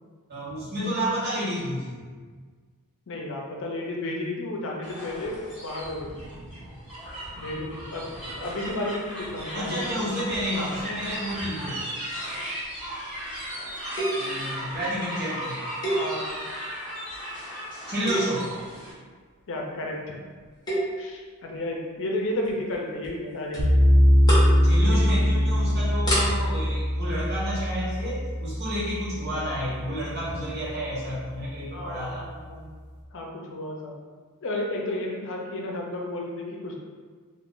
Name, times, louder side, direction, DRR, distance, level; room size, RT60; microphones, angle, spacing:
voice 1, 0.3-2.1 9.5-11.8 14.1-15.7 17.9-18.5 24.6-32.3, equal, 50° right, -8 dB, 1.2 m, -30 dB
voice 2, 3.1-5.4 5.6-6.1 7.4-9.9 15.9-16.3 19.5-20.2 21.0-23.8 31.7-32.7 33.1-34.0 34.4-36.8, left 1 dB, 60° left, 0 dB, 0.6 m, -32 dB
sound 1, 4.8-18.9, equal, 5° right, 1.3 m, -36 dB
sound 2, 14.0-14.4 15.8-16.5 17.1-17.4 17.9-18.5 20.4-21.0 22.4-22.7 23.0-23.1 23.5-23.7 24.0-24.6 25.0-25.2 25.7-25.8 26.0-26.2, right 1 dB, 20° left, 1.1 m, -28 dB
sound 3, 23.6-30.7, equal, 85° right, 0.7 m, -22 dB
2.8 x 2.5 x 3.6 m, 1.5 s
head